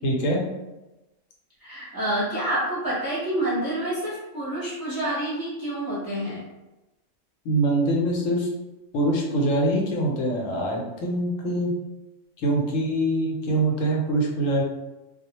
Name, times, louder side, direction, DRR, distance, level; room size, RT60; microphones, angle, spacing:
voice 1, 0.0-0.4 7.4-8.5 8.9-11.7 12.4-14.6, right 1 dB, 85° left, -1 dB, 1.0 m, -24 dB
voice 2, 1.6-6.4, right 1 dB, 20° right, -9 dB, 0.7 m, -28 dB
2.3 x 2.1 x 2.9 m, 1.0 s
omnidirectional pair, 1.3 m